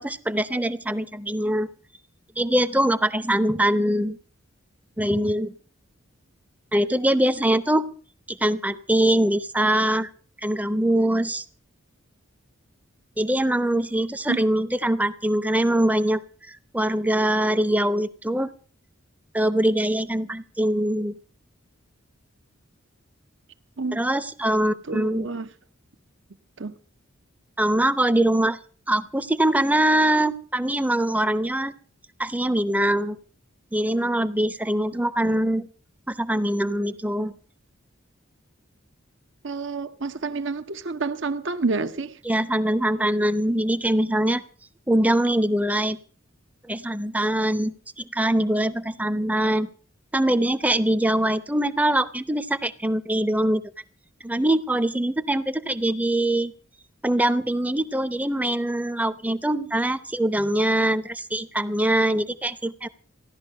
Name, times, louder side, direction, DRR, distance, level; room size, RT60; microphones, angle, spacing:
voice 1, 0.0-1.7 2.4-4.2 5.0-5.5 6.7-7.9 8.3-10.1 10.4-11.4 13.2-16.2 16.5-18.5 19.3-21.1 23.9-25.3 27.6-28.6 28.9-31.7 32.2-33.2 33.7-35.7 36.1-37.3 42.2-44.4 44.9-46.0 46.7-49.7 50.1-53.6 54.2-56.5 57.0-62.9, right 1 dB, 5° right, 0.7 m, -23 dB
voice 2, 24.9-25.5 26.6-26.7 39.4-42.2, right 3 dB, 60° right, 0.9 m, -28 dB
15.5 x 11.5 x 6.5 m
head